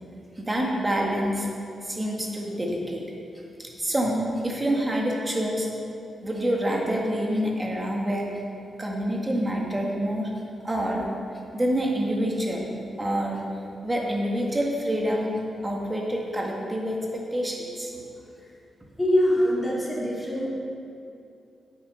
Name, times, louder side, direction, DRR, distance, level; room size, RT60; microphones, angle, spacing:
voice 1, 0.4-1.5 1.8-3.0 3.6-5.7 6.2-8.3 8.8-10.3 10.6-11.1 11.5-13.5 13.8-15.3 15.6-17.9, equal, 15° right, -1 dB, 1.8 m, -27 dB
voice 2, 19.0-20.5, equal, 15° left, -4 dB, 2.4 m, -23 dB
8.7 x 8.7 x 5.6 m, 2.5 s
wide cardioid pair, 120°, 0 cm